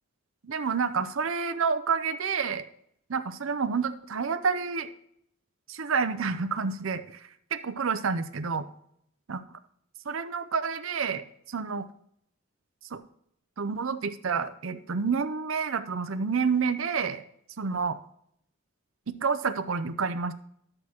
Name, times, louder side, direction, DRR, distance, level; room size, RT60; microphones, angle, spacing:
voice 1, 0.4-2.6 3.1-4.9 5.7-7.0 7.5-8.7 9.3-9.4 10.1-11.9 12.9-13.0 13.6-17.2 17.6-18.0 19.1-20.3, right 5 dB, 70° right, 12 dB, 0.6 m, -29 dB
11.5 x 7.7 x 3.0 m, 0.71 s
head